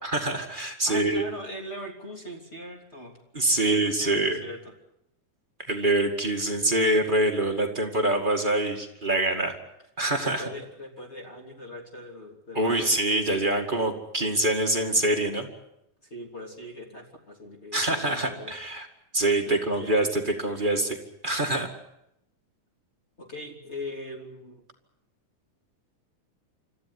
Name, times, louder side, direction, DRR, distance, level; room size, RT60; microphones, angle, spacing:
voice 1, 0.0-1.2 3.3-4.4 5.7-9.6 10.0-10.5 12.5-15.5 17.7-18.9 19.1-21.0 21.2-21.7, right 2 dB, 20° right, 2 dB, 1.8 m, -25 dB
voice 2, 0.8-3.2 3.6-4.6 10.2-12.9 16.1-18.5 19.4-19.9 23.2-24.6, left 1 dB, 20° left, 2 dB, 3.4 m, -40 dB
26.0 x 14.5 x 9.8 m, 0.82 s
omnidirectional pair, 3.6 m